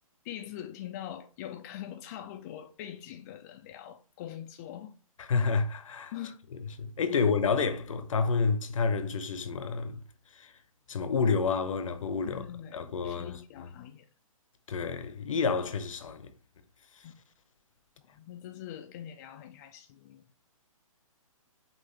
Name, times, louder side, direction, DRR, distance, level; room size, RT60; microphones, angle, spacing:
voice 1, 0.2-4.9 6.1-6.4 12.2-14.1 17.0-17.2 18.0-20.2, left 11 dB, 30° left, 0.4 m, -43 dB
voice 2, 5.2-6.1 6.8-10.0 10.3-10.5 10.9-13.7 14.7-16.3, left 5 dB, 65° left, 0.8 m, -29 dB
5.6 x 2.6 x 3.3 m
hypercardioid pair, 135°, 18 cm